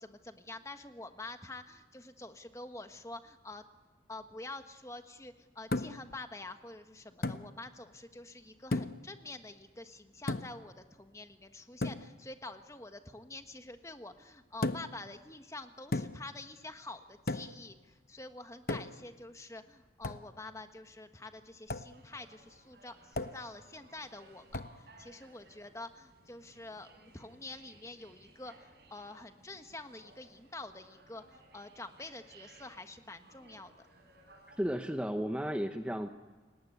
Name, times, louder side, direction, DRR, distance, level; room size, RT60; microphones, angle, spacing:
voice 1, 0.0-3.6 4.1-33.7, left 2 dB, 15° left, 8 dB, 1.3 m, -47 dB
sound 1, 5.7-6.1 7.2-7.5 8.7-9.1 10.3-10.7 11.8-12.1 14.6-15.0 15.9-16.3 17.3-17.6 18.7-19.1 20.0-20.3 21.7-21.9 23.1-23.5 24.5-24.8, left 2 dB, 50° left, 0.8 m, -35 dB
sound 2, 21.9-34.8, right 2 dB, 60° right, 6.6 m, -61 dB
voice 2, 34.3-36.1, equal, 5° right, 6 dB, 0.9 m, -34 dB
29.0 x 18.0 x 9.6 m, 1.3 s
head